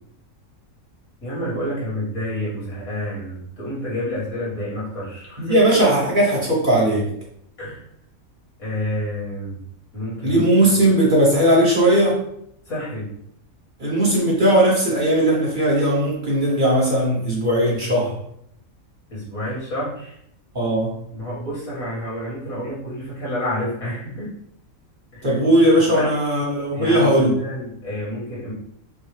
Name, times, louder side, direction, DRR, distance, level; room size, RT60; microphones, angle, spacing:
voice 1, 1.2-5.5 7.6-7.8 8.6-9.6 9.9-10.4 12.7-13.1 19.1-20.2 21.1-24.3 25.1-25.4 25.9-26.1 26.7-28.5, left 1 dB, 80° left, -7 dB, 2.2 m, -29 dB
voice 2, 5.4-7.1 10.2-12.2 13.8-18.1 20.5-20.9 25.2-27.4, right 1 dB, 40° right, -4 dB, 1.0 m, -18 dB
5.4 x 2.0 x 3.2 m, 0.71 s
omnidirectional pair, 1.5 m